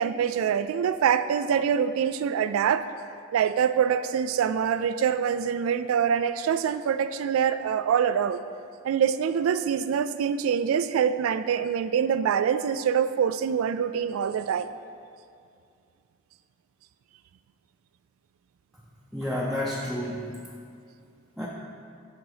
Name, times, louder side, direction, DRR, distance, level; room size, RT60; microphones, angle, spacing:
voice 1, 0.0-2.9 3.3-8.4 8.8-14.7, right 7 dB, 85° right, 13 dB, 0.3 m, -25 dB
voice 2, 19.1-20.5 21.4-21.5, left 1 dB, ahead, -6 dB, 0.6 m, -30 dB
11.0 x 4.0 x 4.8 m, 2.4 s
head